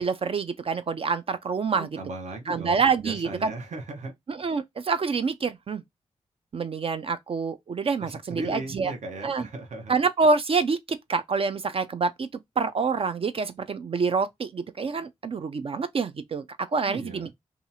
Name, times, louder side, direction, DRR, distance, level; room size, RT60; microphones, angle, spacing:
voice 1, 0.0-1.9 2.5-3.5 4.3-5.8 6.5-8.9 9.2-9.5 9.9-12.3 12.6-16.4 16.7-17.3, right 4 dB, 45° right, 0.4 m, -26 dB
voice 2, 1.7-4.1 8.0-9.9 16.9-17.3, right 2 dB, 65° right, 0.8 m, -37 dB
2.7 x 2.3 x 2.7 m
supercardioid pair, 40°, 13 cm